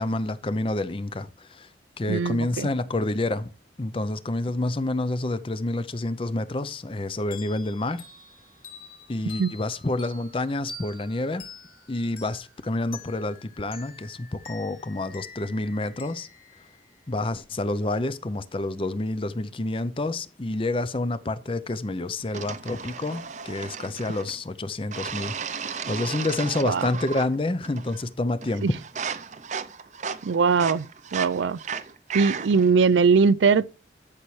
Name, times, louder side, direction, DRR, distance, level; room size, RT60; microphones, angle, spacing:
voice 1, 0.0-1.7 2.0-3.5 3.8-8.0 9.1-11.5 11.9-16.3 17.1-28.7, left 2 dB, 30° left, 0.5 m, -28 dB
voice 2, 2.1-2.7 9.4-9.5 26.6-26.9 28.6-28.7 30.2-31.6 32.1-33.7, right 5 dB, 90° right, 0.4 m, -21 dB
sound 1, 7.3-17.6, left 4 dB, 50° left, 2.6 m, -47 dB
sound 2, 22.3-24.4 24.9-27.4 27.6-28.1 28.4-32.7, right 6 dB, 40° right, 0.6 m, -35 dB
12.0 x 5.8 x 3.2 m
head